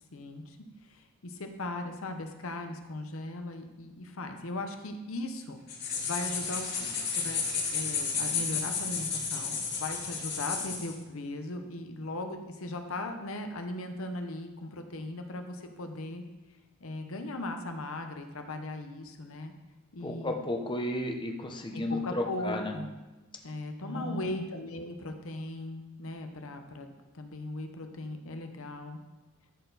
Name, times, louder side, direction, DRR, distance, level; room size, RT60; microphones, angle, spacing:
voice 1, 0.1-0.6 0.9-5.6 6.0-7.4 7.7-16.2 16.8-19.5 19.9-20.4 21.7-22.9 23.4-29.0, left 2 dB, 70° left, 5 dB, 0.9 m, -38 dB
sound 1, 5.7-10.9, left 5 dB, 50° left, 2.2 m, -32 dB
voice 2, 20.0-22.8 23.8-24.4, left 1 dB, 20° left, 3 dB, 0.8 m, -33 dB
13.0 x 4.5 x 4.0 m, 1.1 s
head